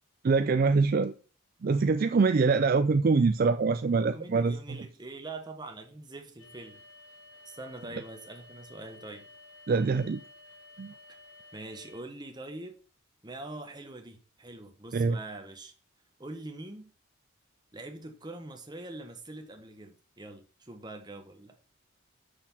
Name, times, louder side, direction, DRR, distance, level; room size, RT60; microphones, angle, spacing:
voice 1, 0.2-1.1 1.6-4.8 9.7-10.2 10.8-10.9 14.9-15.2, right 4 dB, 45° right, 0.4 m, -24 dB
voice 2, 4.0-6.8 7.4-9.3 11.5-12.8 13.2-15.7 16.2-16.9 17.7-21.6, right 2 dB, 20° right, 1.1 m, -43 dB
sound 1, 6.4-12.0, left 2 dB, 85° left, 3.1 m, -53 dB
6.6 x 6.0 x 5.7 m
head